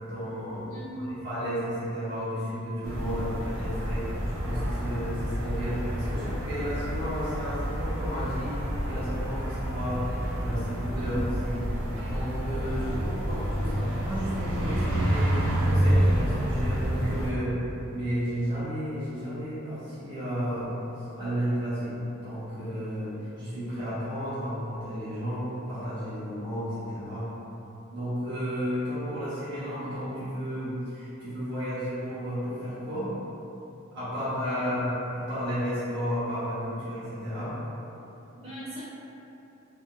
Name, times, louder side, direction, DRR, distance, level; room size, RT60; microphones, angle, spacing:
voice 1, 0.0-0.7 1.0-4.1 4.4-10.1 10.4-11.2 11.4-11.6 12.0-17.6 17.9-27.3 27.9-33.1 33.9-37.6, equal, 60° right, -14 dB, 1.2 m, -33 dB
voice 2, 0.7-1.1 10.9-11.4 34.5-34.8 38.3-38.8, equal, 30° right, -10 dB, 1.0 m, -39 dB
sound 1, 2.8-17.3, equal, 80° right, 0.5 m, -29 dB
3.8 x 2.2 x 2.5 m, 2.9 s
head